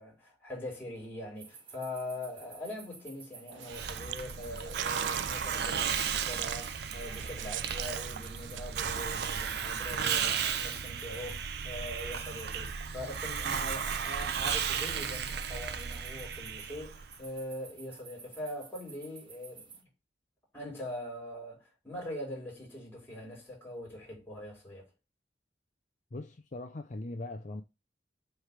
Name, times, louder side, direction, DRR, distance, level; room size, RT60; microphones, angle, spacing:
voice 1, 0.0-19.9 20.5-24.9, left 1 dB, 15° left, 4.7 m, -42 dB
sound 1, 1.4-19.8, right 5 dB, 30° right, 1.2 m, -53 dB
sound 2, 3.5-9.7, right 13 dB, 85° right, 0.3 m, -42 dB
Hiss, 3.7-17.2, right 7 dB, 65° right, 0.7 m, -34 dB
voice 2, 26.1-27.6, left 2 dB, 45° left, 0.6 m, -40 dB
8.0 x 3.4 x 5.8 m
head